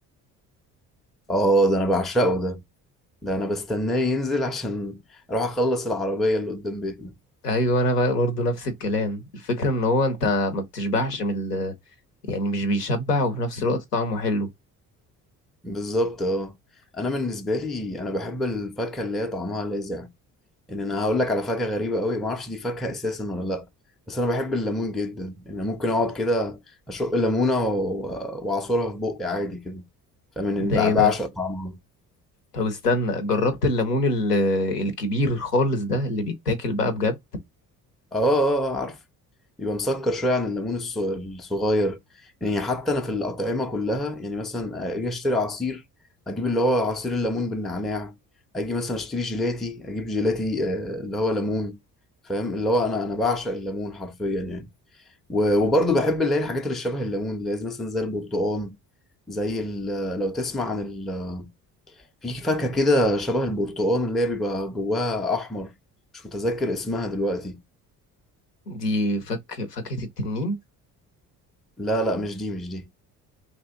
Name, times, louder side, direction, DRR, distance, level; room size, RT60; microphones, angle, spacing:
voice 1, 1.3-2.6 3.2-5.0 5.3-7.1 15.6-16.5 16.9-20.1 20.7-23.6 24.1-26.6 26.9-29.8 30.4-31.8 38.1-39.0 39.6-42.0 42.4-45.8 46.3-48.2 48.5-51.8 52.3-54.7 55.3-58.8 59.3-61.5 62.2-65.7 66.1-67.6 71.8-72.8, left 1 dB, ahead, 0.4 m, -25 dB
voice 2, 7.4-11.7 12.3-14.5 30.6-31.1 32.5-37.2 68.7-70.6, left 1 dB, 90° left, 0.6 m, -24 dB
3.0 x 2.6 x 3.7 m
figure-of-eight pair, 50°, 46 cm